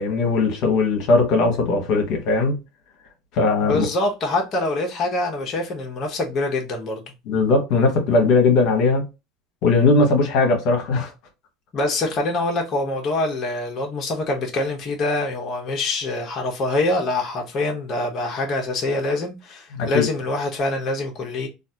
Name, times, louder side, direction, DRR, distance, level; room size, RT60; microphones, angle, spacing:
voice 1, 0.0-2.6 3.3-3.8 7.3-9.0 9.6-11.1 19.7-20.1, left 3 dB, 60° left, 1.1 m, -19 dB
voice 2, 3.6-7.0 11.7-21.5, left 2 dB, 40° left, 1.0 m, -25 dB
3.2 x 2.5 x 2.8 m
hypercardioid pair, 85°, 0 cm